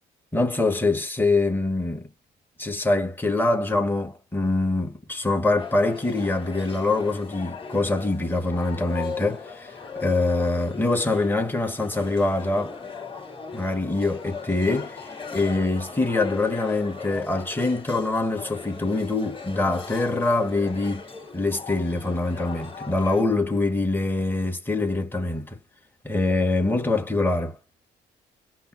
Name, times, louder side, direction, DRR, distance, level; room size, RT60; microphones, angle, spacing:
voice 1, 0.3-2.0 2.6-12.8 13.5-15.1 15.3-21.1 21.3-25.6 26.0-27.6, left 2 dB, 10° left, 1.5 m, -24 dB
sound 1, 5.6-23.2, left 4 dB, 25° left, 2.5 m, -38 dB
5.4 x 2.0 x 2.9 m
cardioid pair, 90°, 20 cm